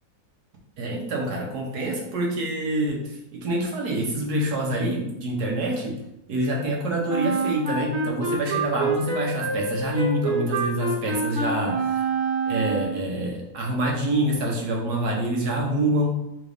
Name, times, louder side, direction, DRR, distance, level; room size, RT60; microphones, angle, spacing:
voice 1, 0.8-6.0 6.3-12.0 12.5-16.1, right 1 dB, 85° right, -1 dB, 1.6 m, -26 dB
Wind instrument woodwind instrument, 7.1-13.1, right 4 dB, 60° right, 1.2 m, -27 dB
4.1 x 2.7 x 4.9 m, 0.86 s
omnidirectional pair, 1.6 m